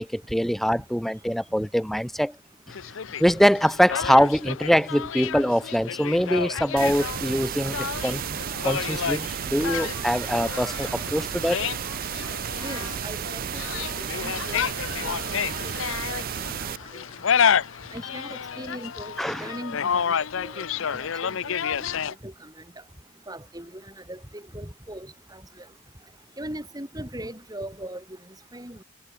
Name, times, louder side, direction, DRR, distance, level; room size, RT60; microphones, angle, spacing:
voice 1, 0.0-2.4 3.2-8.4 8.6-11.6 19.2-19.5, equal, ahead, 0.7 m, -23 dB
sound 1, 2.7-22.1, left 7 dB, 60° left, 0.6 m, -30 dB
sound 2, 6.8-16.8, right 9 dB, 40° right, 0.4 m, -33 dB
voice 2, 12.6-15.2 15.6-15.7 16.1-16.5 16.9-17.0 17.9-19.1 19.4-21.5 22.2-22.5 23.3-23.8 24.1-25.6 26.4-28.0 28.5-28.8, right 1 dB, 15° right, 4.1 m, -39 dB
sound 3, 12.9-19.6, left 3 dB, 20° left, 6.2 m, -54 dB
head